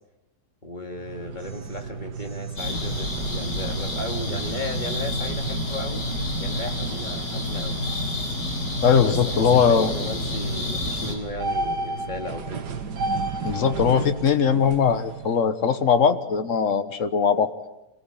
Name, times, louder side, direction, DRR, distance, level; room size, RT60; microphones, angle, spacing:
voice 1, 0.6-6.0 6.4-7.8 9.0-12.6, left 1 dB, 25° left, 4 dB, 2.4 m, -35 dB
sound 1, 0.9-15.4, right 3 dB, 70° right, 1.9 m, -34 dB
sound 2, 2.6-11.1, left 1 dB, 80° left, 4.9 m, -29 dB
voice 2, 8.8-9.9 13.4-17.5, left 6 dB, 50° left, 11 dB, 1.5 m, -20 dB
26.0 x 18.5 x 8.9 m, 0.96 s
omnidirectional pair, 1.9 m